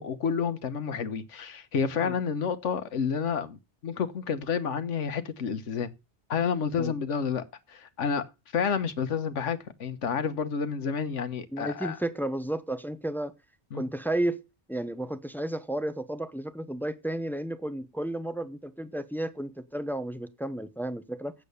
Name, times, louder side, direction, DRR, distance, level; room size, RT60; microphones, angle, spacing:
voice 1, 0.0-5.9 6.3-8.2 8.5-12.0 13.7-13.8, left 6 dB, 85° left, 1.4 m, -30 dB
voice 2, 11.5-13.3 13.7-14.4 14.7-21.3, right 1 dB, ahead, 0.7 m, -32 dB
8.4 x 7.6 x 6.9 m
omnidirectional pair, 1.2 m